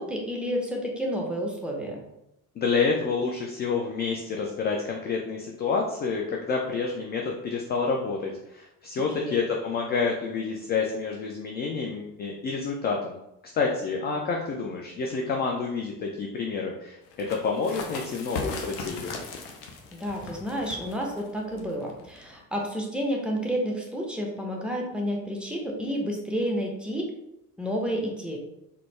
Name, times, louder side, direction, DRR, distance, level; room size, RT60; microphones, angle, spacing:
voice 1, 0.0-2.0 9.1-9.4 19.9-27.1 27.6-28.4, equal, ahead, -1 dB, 0.7 m, -30 dB
voice 2, 2.6-13.2 13.5-19.1, left 4 dB, 25° left, 0 dB, 0.3 m, -28 dB
sound 1, 17.1-22.4, left 4 dB, 50° left, 0.7 m, -38 dB
3.9 x 2.1 x 3.1 m, 0.85 s
figure-of-eight pair, 55°, 46 cm